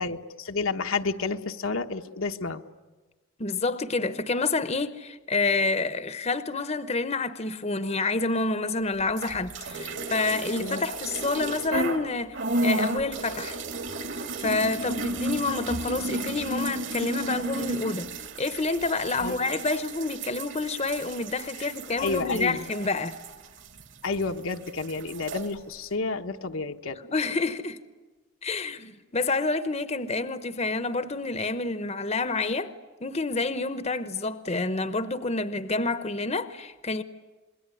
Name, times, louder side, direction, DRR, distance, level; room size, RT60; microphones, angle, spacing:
voice 1, 0.0-2.6 10.6-10.8 19.2-19.4 21.6-22.7 24.0-27.0, left 3 dB, 80° left, 1.2 m, -30 dB
voice 2, 3.4-13.6 14.4-18.1 18.4-23.1 27.1-27.8 28.4-32.7 33.0-37.0, left 3 dB, 30° left, 0.9 m, -28 dB
sound 1, 9.1-12.0 12.3-24.2 24.5-25.5, right 2 dB, 60° right, 2.6 m, -33 dB
27.0 x 21.5 x 9.8 m
head